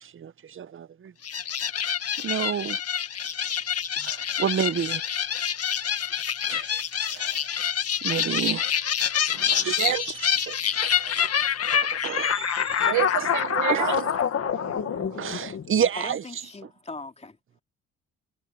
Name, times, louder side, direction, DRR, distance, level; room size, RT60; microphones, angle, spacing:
voice 1, 0.0-1.1 2.2-2.8 4.0-5.0 6.5-6.7 7.1-7.4 8.0-8.7 9.4-11.4 12.0-12.9 13.7-13.9 15.2-16.2, right 8 dB, 45° right, 1.0 m, -30 dB
sound 1, 1.2-15.9, left 8 dB, 55° left, 1.8 m, -26 dB
voice 2, 9.3-10.0 12.8-15.4, right 14 dB, 75° right, 1.1 m, -30 dB
voice 3, 15.9-17.6, left 3 dB, 20° left, 2.8 m, -40 dB
cardioid pair, 90°, 30 cm